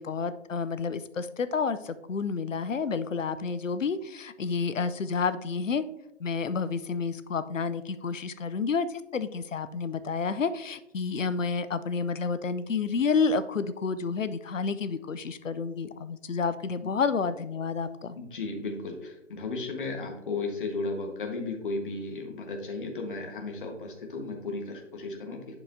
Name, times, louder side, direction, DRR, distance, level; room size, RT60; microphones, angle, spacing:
voice 1, 0.0-5.8 6.2-18.2, left 5 dB, 90° left, 13 dB, 0.7 m, -30 dB
voice 2, 18.2-25.5, left 3 dB, 45° left, 2 dB, 1.4 m, -35 dB
11.0 x 4.7 x 2.7 m, 0.87 s
figure-of-eight pair, 155°, 37 cm